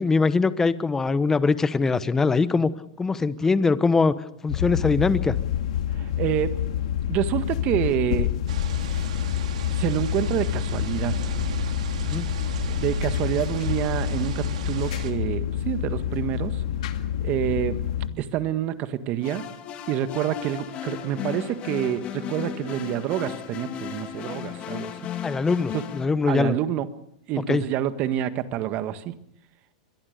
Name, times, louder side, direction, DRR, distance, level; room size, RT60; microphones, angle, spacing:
voice 1, 0.0-2.7 3.0-4.1 4.4-5.4 12.0-12.3 25.2-26.5 27.5-27.6, left 4 dB, 10° left, 15 dB, 1.1 m, -22 dB
sound 1, 4.5-18.1, left 10 dB, 75° left, 2.2 m, -27 dB
voice 2, 6.0-6.5 7.1-8.3 9.8-11.1 12.7-16.6 17.2-17.8 18.2-19.4 19.9-24.9 25.7-25.8 26.3-26.9 27.3-29.1, right 11 dB, 40° right, 11 dB, 1.7 m, -27 dB
sound 2, 8.5-15.1, right 8 dB, 85° right, 3.5 m, -36 dB
sound 3, 19.2-26.1, left 9 dB, 35° left, 3.2 m, -35 dB
24.5 x 21.5 x 6.8 m, 0.74 s
supercardioid pair, 135°, 4 cm